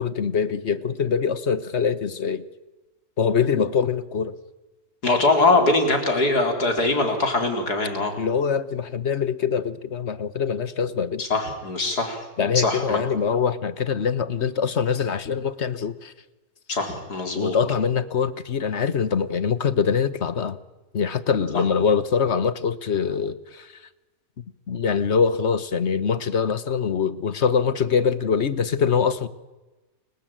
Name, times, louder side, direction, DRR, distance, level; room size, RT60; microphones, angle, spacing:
voice 1, 0.0-2.4 3.2-4.3 8.2-11.2 12.4-16.1 17.3-20.6 20.9-23.7 24.7-29.3, left 6 dB, 50° left, 1.3 m, -23 dB
voice 2, 5.0-8.2 11.2-13.0 16.7-17.5, left 2 dB, 85° left, 4.8 m, -22 dB
29.5 x 20.5 x 9.0 m
omnidirectional pair, 1.6 m